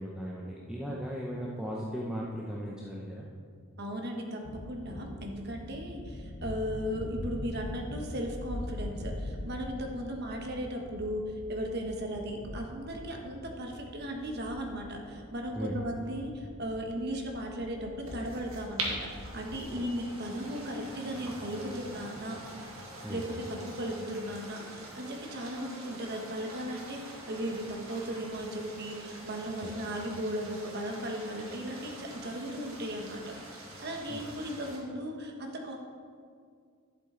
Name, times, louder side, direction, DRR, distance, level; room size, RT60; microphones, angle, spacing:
voice 1, 0.0-3.3 15.6-15.8 19.8-19.9 23.0-23.3 29.6-29.7 34.1-34.2, equal, 5° right, -4 dB, 0.7 m, -37 dB
voice 2, 3.8-22.4 23.1-35.8, equal, 50° right, 2 dB, 1.2 m, -36 dB
sound 1, 4.4-19.8, left 1 dB, 40° left, 0.7 m, -43 dB
sound 2, 18.0-34.8, right 1 dB, 75° right, 1.9 m, -44 dB
11.5 x 7.5 x 3.8 m, 2.2 s
head